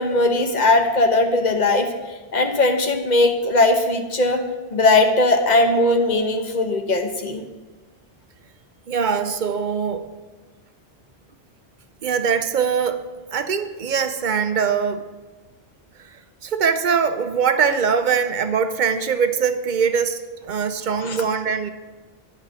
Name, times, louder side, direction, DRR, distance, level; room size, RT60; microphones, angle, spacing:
voice 1, 0.0-1.9 2.3-4.4 4.7-7.4 21.0-21.2, left 2 dB, 45° left, 5 dB, 1.0 m, -19 dB
voice 2, 8.9-10.1 12.0-13.0 13.3-15.1 16.0-21.7, right 6 dB, 50° right, 10 dB, 0.7 m, -22 dB
10.0 x 5.6 x 6.2 m, 1.3 s
omnidirectional pair, 1.1 m